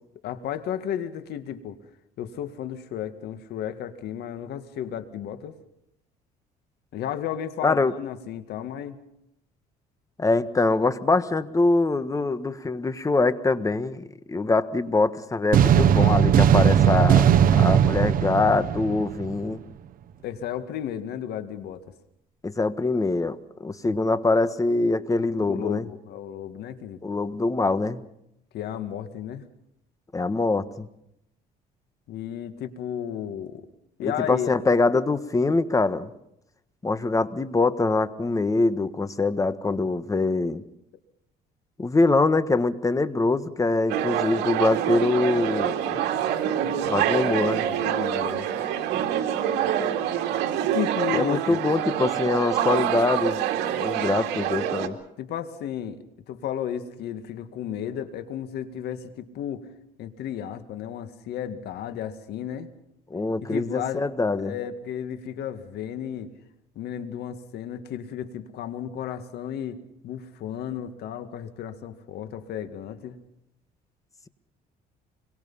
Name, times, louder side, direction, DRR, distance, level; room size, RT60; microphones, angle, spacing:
voice 1, 0.2-1.8 2.2-5.5 6.9-9.0 20.2-21.8 23.9-24.0 25.5-27.0 28.5-29.4 32.1-33.7 34.0-34.6 47.6-48.5 50.6-51.6 55.2-59.6 60.0-62.7 63.4-64.1 64.4-66.3 66.8-69.8 70.0-73.2, left 9 dB, 75° left, 9 dB, 2.1 m, -33 dB
voice 2, 7.6-7.9 10.2-17.3 17.5-19.6 22.4-25.9 27.0-28.0 30.1-30.9 34.0-36.1 36.8-40.6 41.8-46.0 46.8-47.7 51.1-53.4 53.8-55.0 63.1-64.5, left 3 dB, 20° left, 12 dB, 1.4 m, -24 dB
sound 1, 15.5-19.5, right 9 dB, 55° right, 1.0 m, -18 dB
sound 2, 43.9-54.9, right 10 dB, 85° right, 2.5 m, -26 dB
25.5 x 22.5 x 5.6 m, 0.78 s
cardioid pair, 110°, 17 cm